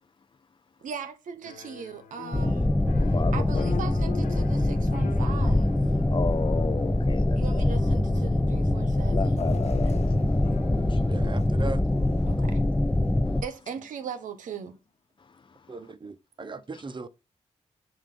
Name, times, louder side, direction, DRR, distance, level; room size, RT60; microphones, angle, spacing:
voice 1, 0.8-2.7 3.3-6.0 7.3-9.4 12.3-12.6 13.4-14.8, right 6 dB, 80° right, 0.9 m, -39 dB
sound 1, 1.4-12.7, left 9 dB, 85° left, 0.6 m, -44 dB
sound 2, 2.3-13.4, left 1 dB, 15° left, 0.8 m, -24 dB
voice 2, 3.0-3.7 6.1-7.6 9.1-11.1, left 5 dB, 35° left, 0.5 m, -33 dB
sound 3, 9.4-12.5 13.0-13.1 14.1-14.2, left 5 dB, 60° left, 1.1 m, -43 dB
voice 3, 11.1-11.8 15.7-17.1, right 3 dB, 35° right, 0.8 m, -38 dB
7.2 x 2.6 x 5.2 m
supercardioid pair, 50°, 13 cm